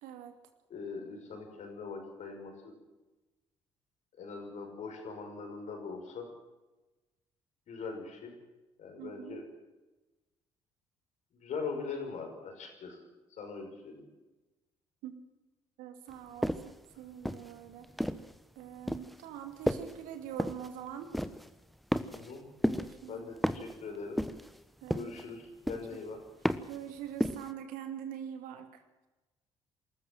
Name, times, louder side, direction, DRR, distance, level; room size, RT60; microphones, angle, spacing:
voice 1, 0.0-0.3 9.0-9.4 15.0-15.2 15.8-17.9 18.6-21.1 22.6-23.2 24.8-25.1 25.9-26.0 26.6-28.8, right 9 dB, 70° right, 6 dB, 2.4 m, -44 dB
voice 2, 0.7-2.7 4.2-6.3 7.7-8.4 8.8-9.4 11.4-13.0 13.4-14.1 22.1-22.4 23.1-24.2 24.9-26.2, left 4 dB, 55° left, 4 dB, 5.9 m, -41 dB
sound 1, 16.4-16.8 17.2-18.3 18.9-19.2 19.7-20.0 20.4-20.7 21.1-21.5 21.9-22.4 22.6-23.0 23.4-23.8 24.2-24.6 24.9-25.3 25.7-26.0 26.4-26.8 27.2-27.5, equal, ahead, 1.2 m, -32 dB
24.5 x 14.0 x 7.7 m, 1.1 s
hypercardioid pair, 50°, 14 cm